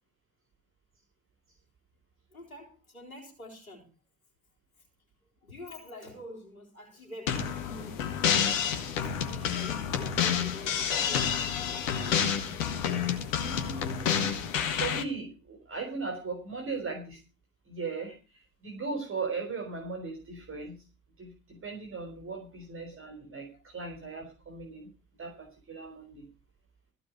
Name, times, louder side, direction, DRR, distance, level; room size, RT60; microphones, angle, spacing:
voice 1, 2.3-3.9 5.4-8.2 8.9-12.3 23.5-23.7, left 1 dB, 85° left, -1 dB, 3.6 m, -47 dB
sound 1, 7.3-15.0, left 8 dB, 70° left, 1.7 m, -29 dB
voice 2, 13.3-14.4 14.7-17.2 17.7-20.8 21.2-24.9 25.2-26.2, right 4 dB, 30° right, 2 dB, 4.1 m, -38 dB
15.0 x 5.2 x 9.6 m, 0.33 s
figure-of-eight pair, 55°, 41 cm